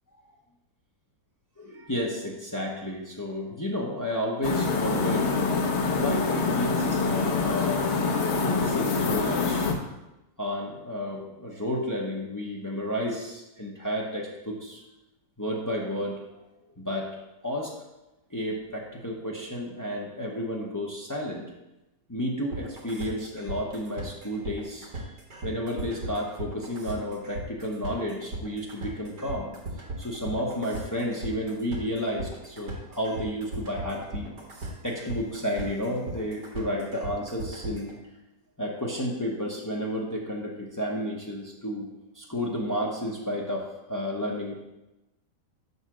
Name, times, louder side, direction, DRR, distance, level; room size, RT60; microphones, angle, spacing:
voice 1, 1.6-5.3 5.9-7.9 8.3-9.7 10.4-14.8 15.4-16.2 16.6-17.1 17.4-17.7 18.3-21.4 22.1-24.9 25.4-29.5 30.0-34.4 34.8-38.0 38.6-41.9 42.1-44.6, equal, 30° left, -2 dB, 0.3 m, -32 dB
sound 1, 4.4-9.7, left 4 dB, 55° left, 0.8 m, -25 dB
sound 2, 22.5-37.9, right 2 dB, 85° right, 1.9 m, -37 dB
5.5 x 4.1 x 6.0 m, 0.97 s
omnidirectional pair, 1.8 m